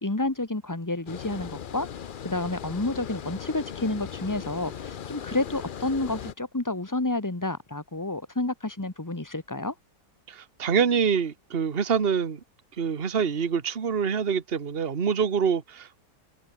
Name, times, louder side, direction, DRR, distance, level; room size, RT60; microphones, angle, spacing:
voice 1, 0.0-1.9 2.2-9.7, left 2 dB, 10° left, 1.4 m, -30 dB
Water, 1.1-6.3, left 8 dB, 65° left, 0.5 m, -38 dB
voice 2, 10.3-12.4 12.8-16.0, right 6 dB, 35° right, 1.5 m, -25 dB
omnidirectional pair, 1.9 m